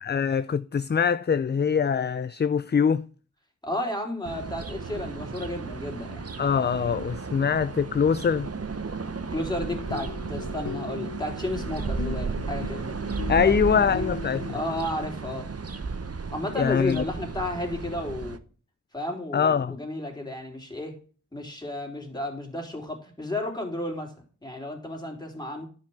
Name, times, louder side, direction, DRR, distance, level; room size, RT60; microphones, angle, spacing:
voice 1, 0.0-3.1 6.4-8.5 13.3-14.6 16.6-17.0 19.3-19.7, left 6 dB, 35° left, 0.4 m, -23 dB
voice 2, 3.6-6.2 9.3-12.9 13.3-14.0 14.5-15.5 16.3-18.4 18.9-21.0 21.3-24.1 24.4-25.7, left 1 dB, 15° left, 3.7 m, -33 dB
sound 1, 4.2-18.4, right 4 dB, 50° right, 0.9 m, -34 dB
sound 2, 9.5-15.1, left 6 dB, 75° left, 0.8 m, -39 dB
10.5 x 5.3 x 6.3 m
wide cardioid pair, 45°, 31 cm